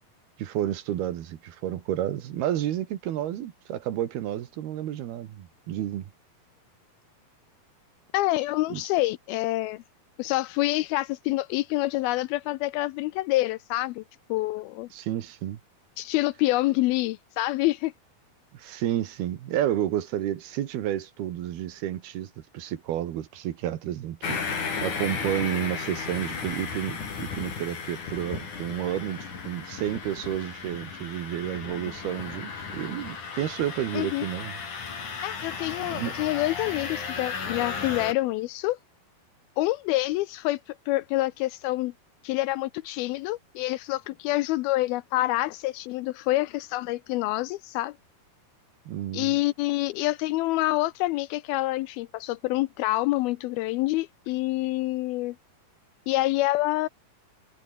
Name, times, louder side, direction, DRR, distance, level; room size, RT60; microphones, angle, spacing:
voice 1, 0.4-6.1 8.7-8.8 14.9-15.6 18.5-34.6 35.9-36.1 48.9-49.3, right 12 dB, 80° right, 3.6 m, -31 dB
voice 2, 8.1-9.8 10.2-14.0 14.3-14.9 16.0-17.9 33.9-34.3 35.2-38.8 39.6-41.9 42.2-48.0 49.1-55.4 56.1-56.9, left 18 dB, 80° left, 2.4 m, -27 dB
sound 1, 24.2-38.1, left 5 dB, 50° left, 5.7 m, -35 dB
omnidirectional pair, 4.5 m